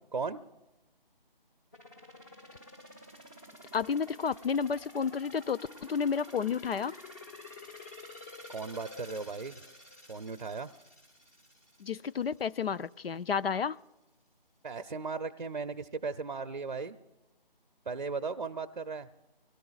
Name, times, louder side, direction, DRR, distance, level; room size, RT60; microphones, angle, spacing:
sound 1, 1.7-12.5 12.9-13.0, left 2 dB, 20° left, 0.9 m, -50 dB
voice 1, 3.7-5.6 5.9-6.9 11.8-13.8, left 6 dB, 80° left, 16 dB, 0.5 m, -31 dB
voice 2, 8.5-9.6 10.1-10.7 14.6-17.0 17.9-19.1, right 4 dB, 50° right, 10 dB, 0.6 m, -36 dB
25.5 x 17.5 x 2.4 m, 0.99 s
figure-of-eight pair, 170°, 29 cm